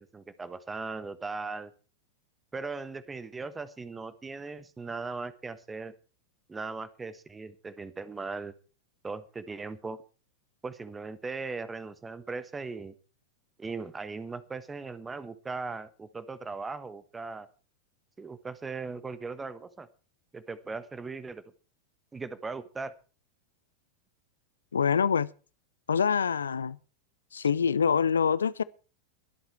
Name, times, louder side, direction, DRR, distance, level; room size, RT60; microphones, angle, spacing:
voice 1, 0.0-1.7 2.5-5.9 6.5-8.5 9.0-10.0 10.6-12.9 13.6-17.5 18.2-19.9 20.3-21.4 22.1-22.9, right 4 dB, 15° right, 1.3 m, -38 dB
voice 2, 24.7-25.3 25.9-26.8 27.3-28.6, left 6 dB, 70° left, 0.5 m, -25 dB
22.0 x 8.0 x 4.6 m
figure-of-eight pair, 90°, 0 cm